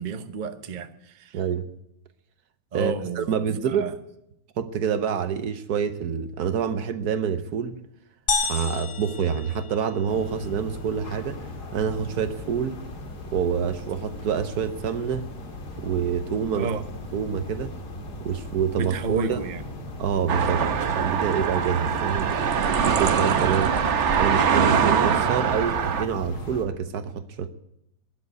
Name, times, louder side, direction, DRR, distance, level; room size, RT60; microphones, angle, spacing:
voice 1, 0.0-1.4 2.7-3.9 16.5-16.8 18.7-19.6, right 4 dB, 35° right, 0.8 m, -31 dB
voice 2, 1.3-1.7 2.7-3.9 4.6-7.8 8.4-11.4 11.7-12.8 13.3-15.3 15.8-16.7 17.1-17.7 18.2-19.4 20.0-22.5 22.8-23.8 24.2-27.5, right 7 dB, 70° right, 1.3 m, -27 dB
sound 1, 8.3-10.2, left 4 dB, 45° left, 1.5 m, -29 dB
sound 2, 10.1-26.6, left 1 dB, 70° left, 2.4 m, -38 dB
sound 3, 20.3-26.0, right 7 dB, 50° right, 1.0 m, -23 dB
12.5 x 10.5 x 9.5 m
omnidirectional pair, 1.8 m